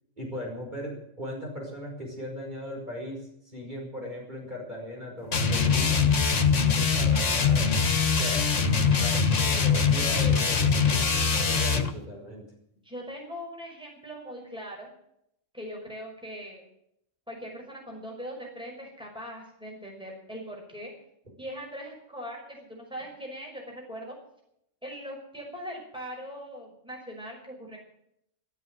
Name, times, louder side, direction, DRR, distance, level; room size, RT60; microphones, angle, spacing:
voice 1, 0.2-6.2 6.7-7.8 8.1-8.4 9.0-12.4, equal, 35° right, -2 dB, 5.6 m, -38 dB
sound 1, 5.3-11.9, left 5 dB, 70° left, 1.8 m, -23 dB
voice 2, 9.4-10.0 12.8-14.9 15.5-16.6 17.3-20.9 21.4-24.2 24.8-27.8, equal, 5° right, -1 dB, 5.6 m, -40 dB
13.5 x 13.0 x 8.0 m, 0.73 s
omnidirectional pair, 1.3 m